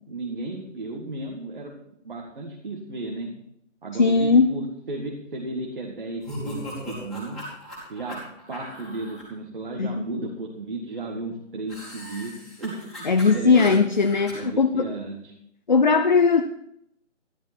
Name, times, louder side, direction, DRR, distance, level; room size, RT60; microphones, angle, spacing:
voice 1, 0.1-1.8 2.0-3.3 3.8-7.4 7.9-8.2 8.5-13.8 14.4-15.3, right 2 dB, 45° right, 0 dB, 2.0 m, -34 dB
voice 2, 4.0-4.5 9.8-10.0 13.1-14.8 15.7-16.4, left 4 dB, 40° left, 7 dB, 0.6 m, -19 dB
sound 1, 6.2-9.2 11.7-14.3, equal, ahead, 3.0 m, -38 dB
13.0 x 12.0 x 4.4 m, 0.75 s
figure-of-eight pair, 160°, 37 cm